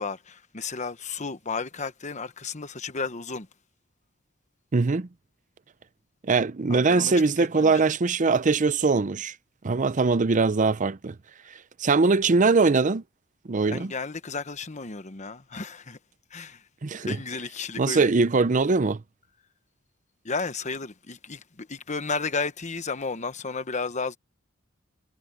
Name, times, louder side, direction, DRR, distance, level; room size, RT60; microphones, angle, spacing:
voice 1, 0.0-3.5 6.7-7.8 13.7-16.0 16.3-16.7 17.0-18.1 20.2-24.2, left 4 dB, 35° left, 1.1 m, -33 dB
voice 2, 4.7-5.1 6.2-9.3 9.6-11.2 11.8-13.0 13.5-13.9 16.8-17.2 17.8-19.0, right 4 dB, 40° right, 0.6 m, -22 dB
head